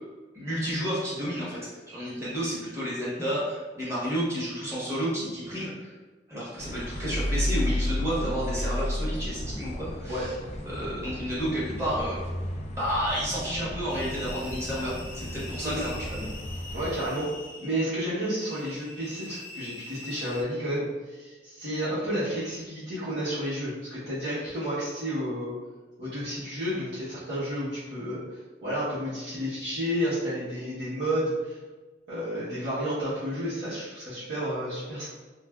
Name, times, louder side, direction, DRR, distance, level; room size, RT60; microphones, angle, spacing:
voice 1, 0.3-5.9 6.3-10.3 10.7-12.2 12.7-16.3, equal, 15° right, -8 dB, 1.0 m, -31 dB
sound 1, 6.6-17.1, left 1 dB, 35° left, 0.3 m, -33 dB
sound 2, 13.9-20.4, left 2 dB, 80° left, 0.8 m, -44 dB
voice 2, 16.7-17.3 17.6-25.5 26.0-31.6 32.1-35.1, equal, 65° right, -13 dB, 0.9 m, -31 dB
3.2 x 2.4 x 2.3 m, 1.3 s
head